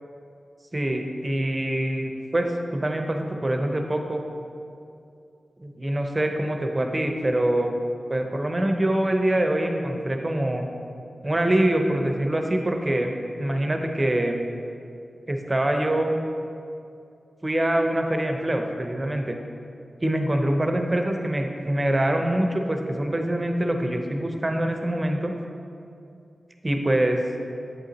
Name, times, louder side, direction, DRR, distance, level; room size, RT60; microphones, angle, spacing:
voice 1, 0.7-4.2 5.6-7.7 8.1-10.6 11.2-13.1 13.4-14.5 15.3-16.2 17.4-19.4 20.0-25.3 26.6-27.2, right 1 dB, 30° right, 4 dB, 0.7 m, -24 dB
7.9 x 3.8 x 4.1 m, 2.6 s
cardioid pair, 45°, 0 cm